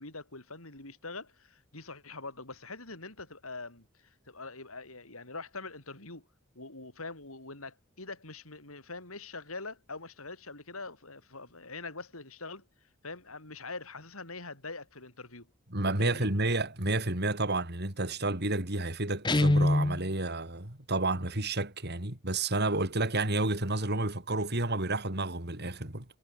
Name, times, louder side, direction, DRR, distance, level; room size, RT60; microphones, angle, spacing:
voice 1, 0.0-3.9 4.3-6.3 6.6-12.7 13.0-15.5 16.0-16.3, left 3 dB, 85° left, 6.9 m, -43 dB
voice 2, 15.7-26.1, right 2 dB, 50° right, 5.0 m, -30 dB
Guitar, 19.2-20.0, left 1 dB, 20° left, 0.7 m, -24 dB
head